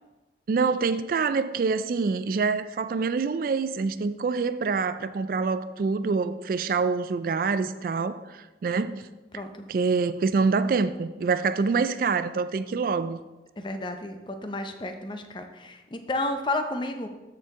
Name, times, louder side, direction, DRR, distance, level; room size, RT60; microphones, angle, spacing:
voice 1, 0.5-9.0 9.7-13.2, right 4 dB, 50° right, 0.3 m, -26 dB
voice 2, 9.3-9.7 13.6-17.1, left 2 dB, 25° left, 0.6 m, -32 dB
13.0 x 4.6 x 3.6 m
head